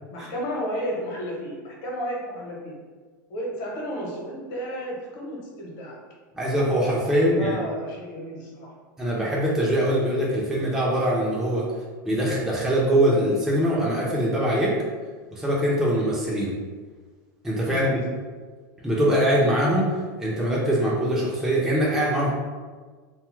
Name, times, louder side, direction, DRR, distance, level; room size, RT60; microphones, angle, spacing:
voice 1, 0.1-2.7 3.3-6.0 7.1-8.7 17.6-17.9, equal, 60° left, -2 dB, 0.9 m, -32 dB
voice 2, 6.3-7.6 9.0-11.6 12.0-14.7 15.3-16.5 17.4-18.0 18.8-19.8 20.2-22.3, equal, 5° right, -6 dB, 0.5 m, -22 dB
2.7 x 2.3 x 3.0 m, 1.5 s
supercardioid pair, 125°, 10 cm